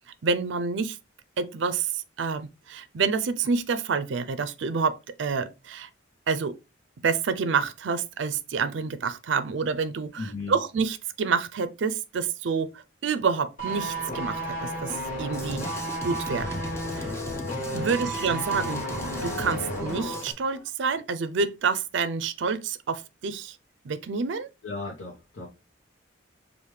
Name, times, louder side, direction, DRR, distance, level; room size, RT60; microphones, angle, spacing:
voice 1, 0.2-1.0 1.4-5.9 6.3-6.5 7.0-15.6 16.0-16.6 16.9-17.1 17.7-18.8 19.2-23.6 23.8-24.5, right 5 dB, 70° right, 0.4 m, -28 dB
voice 2, 10.2-10.6 17.7-18.1 24.6-25.5, left 3 dB, 85° left, 1.0 m, -36 dB
sound 1, 13.6-20.3 20.5-20.7, right 1 dB, 45° left, 1.5 m, -33 dB
Drum kit, 15.3-20.3, left 1 dB, 15° left, 0.6 m, -37 dB
4.8 x 2.5 x 3.2 m
head